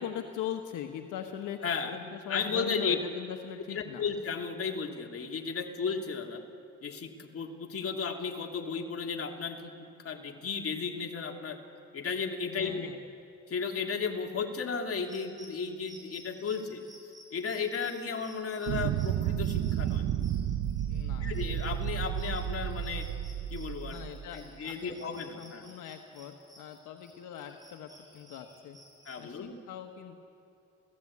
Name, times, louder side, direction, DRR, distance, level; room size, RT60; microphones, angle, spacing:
voice 1, 0.0-1.6 1.9-4.0 12.5-13.0 20.9-21.3 23.9-25.1 25.4-28.8 29.2-30.2, left 9 dB, 85° left, 5 dB, 1.3 m, -41 dB
voice 2, 2.3-3.0 3.7-6.4 6.8-9.7 10.0-11.6 11.9-12.9 13.5-16.8 17.3-20.0 21.2-23.1 23.5-24.0 24.3-25.7 29.1-29.5, left 5 dB, 50° left, 2 dB, 2.8 m, -34 dB
sound 1, 14.9-29.2, right 1 dB, 10° right, 7.0 m, -56 dB
sound 2, 18.7-24.4, right 11 dB, 75° right, 0.9 m, -32 dB
29.0 x 16.0 x 8.7 m, 2.5 s
cardioid pair, 90°, 30 cm